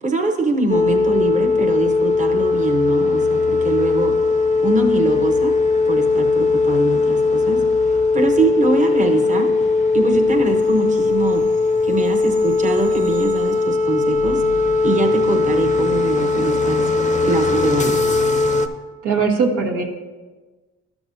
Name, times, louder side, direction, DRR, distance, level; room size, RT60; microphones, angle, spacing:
voice 1, 0.0-4.2 4.6-5.5 5.8-7.6 7.9-9.5 9.9-11.4 11.8-14.4 14.8-16.9 17.2-18.0, right 3 dB, 25° right, 3 dB, 0.9 m, -23 dB
sound 1, 0.7-18.7, left 3 dB, 25° left, 0.5 m, -19 dB
voice 2, 19.0-19.8, right 4 dB, 80° right, 0 dB, 1.2 m, -19 dB
12.5 x 5.9 x 2.7 m, 1.3 s
cardioid pair, 90°, 30 cm